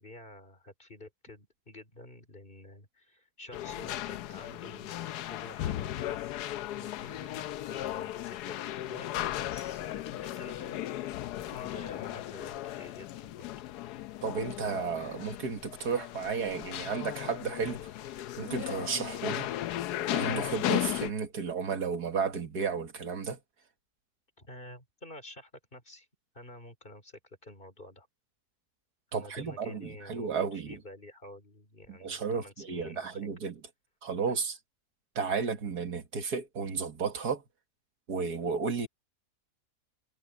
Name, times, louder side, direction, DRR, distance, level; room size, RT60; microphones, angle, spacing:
voice 1, 0.0-6.2 6.8-8.6 8.9-10.8 11.4-13.5 24.4-26.1 26.3-28.1 29.1-33.3 34.3-34.4, left 1 dB, 30° left, 4.3 m, -49 dB
sound 1, 3.5-21.1, left 14 dB, 85° left, 1.2 m, -36 dB
voice 2, 14.2-17.8 18.4-19.5 20.1-23.4 29.1-30.8 31.9-33.5 34.0-34.6 35.2-37.4 38.1-38.9, right 5 dB, 80° right, 2.3 m, -33 dB
omnidirectional pair, 1.7 m